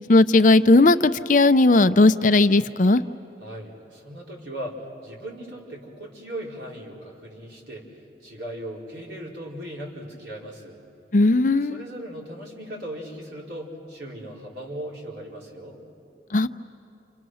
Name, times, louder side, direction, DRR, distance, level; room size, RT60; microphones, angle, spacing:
voice 1, 0.1-3.0 11.1-11.8 16.3-16.5, left 2 dB, 45° left, 11 dB, 0.6 m, -17 dB
voice 2, 3.4-10.8 11.6-15.8, right 1 dB, 80° right, -3 dB, 4.6 m, -38 dB
29.5 x 27.0 x 6.4 m, 2.8 s
head